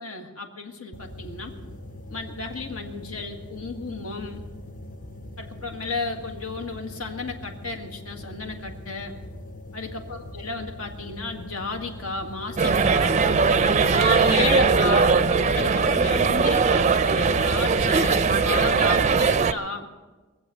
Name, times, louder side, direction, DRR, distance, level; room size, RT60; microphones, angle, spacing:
voice 1, 0.0-1.5 2.1-4.4 5.4-9.2 9.7-13.1 13.9-15.2 15.5-19.9, left 4 dB, 80° left, 4 dB, 1.8 m, -33 dB
sound 1, 0.9-18.8, left 1 dB, 40° left, 0.8 m, -41 dB
sound 2, 12.6-19.5, right 5 dB, 30° right, 0.5 m, -20 dB
22.0 x 7.7 x 6.7 m, 1.2 s
head